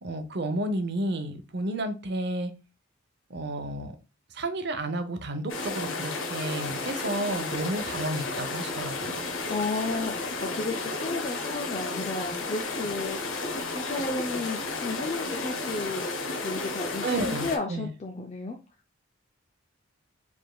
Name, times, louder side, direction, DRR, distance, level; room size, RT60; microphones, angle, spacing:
voice 1, 0.0-2.5 3.3-4.0 4.3-9.3 17.0-17.9, right 1 dB, 50° right, 0.7 m, -31 dB
sound 1, 5.5-17.6, left 3 dB, 65° left, 0.9 m, -33 dB
voice 2, 9.5-13.4 13.7-16.1 16.4-18.6, left 3 dB, 30° left, 0.5 m, -33 dB
4.9 x 3.5 x 2.3 m
head